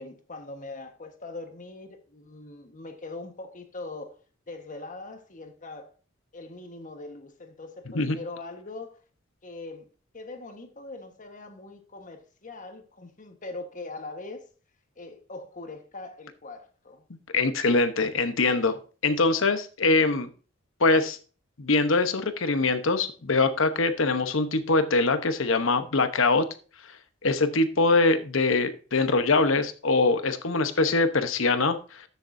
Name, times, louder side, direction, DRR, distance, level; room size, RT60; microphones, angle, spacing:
voice 1, 0.0-4.2 4.5-5.9 6.3-9.0 9.4-14.4 15.0-17.0, left 2 dB, 40° left, 1.4 m, -41 dB
voice 2, 17.3-20.3 20.8-21.2 21.6-26.5 27.2-32.0, left 3 dB, 75° left, 1.0 m, -23 dB
13.0 x 6.9 x 2.7 m
head